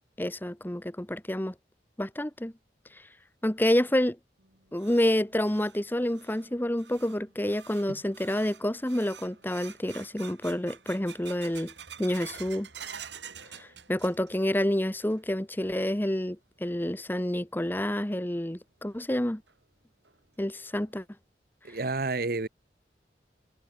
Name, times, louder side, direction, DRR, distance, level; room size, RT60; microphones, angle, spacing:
voice 1, 0.2-1.5 2.0-2.5 2.9-3.1 3.4-4.2 4.7-11.7 12.0-12.7 13.5-19.4 20.4-21.0 21.7-21.8, left 1 dB, 10° left, 0.9 m, -28 dB
sound 1, 4.4-14.5 14.8-15.4 15.8-15.9 16.6-16.7 18.4-18.5 18.9-19.0 19.5-19.6 20.1-20.2 20.7-21.1, right 7 dB, 85° right, 7.7 m, -48 dB
voice 2, 21.6-22.5, right 3 dB, 55° right, 0.9 m, -30 dB
head